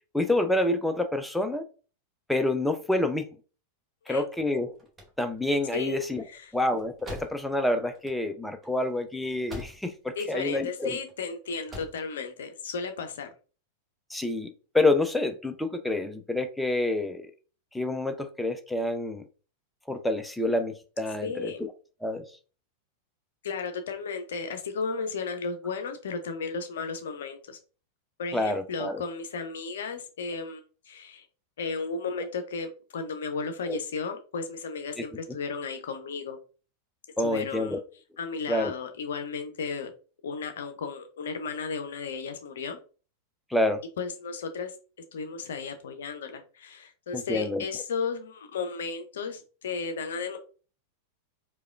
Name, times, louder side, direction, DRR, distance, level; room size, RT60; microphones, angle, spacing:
voice 1, 0.1-1.6 2.3-3.3 4.1-4.7 5.2-6.2 6.5-11.0 14.1-17.2 17.7-19.2 19.9-21.7 22.0-22.2 28.3-29.0 33.7-33.8 35.0-35.1 37.2-37.8 38.5-38.7 43.5-43.8 47.1-47.6, left 2 dB, 5° left, 0.4 m, -28 dB
sound 1, 4.7-10.1 10.4-11.1 11.5-12.1, equal, 15° right, 1.0 m, -45 dB
voice 2, 10.2-13.3 21.2-21.6 23.4-27.6 28.2-30.6 30.9-31.3 31.6-36.4 37.2-37.8 38.2-39.9 40.2-42.8 44.0-44.7 45.1-50.4, left 5 dB, 60° left, 0.5 m, -34 dB
4.7 x 2.2 x 2.3 m
figure-of-eight pair, 90°, 0 cm